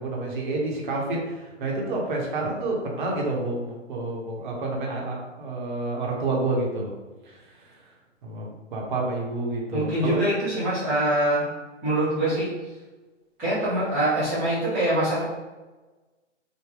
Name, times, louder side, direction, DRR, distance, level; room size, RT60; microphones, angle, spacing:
voice 1, 0.0-6.9 7.3-7.4 8.2-10.2, right 2 dB, 40° right, -1 dB, 0.9 m, -29 dB
voice 2, 9.7-11.5 11.8-12.5 13.4-15.2, right 1 dB, 5° right, -16 dB, 0.4 m, -24 dB
3.4 x 2.2 x 3.4 m, 1.2 s
hypercardioid pair, 135°, 37 cm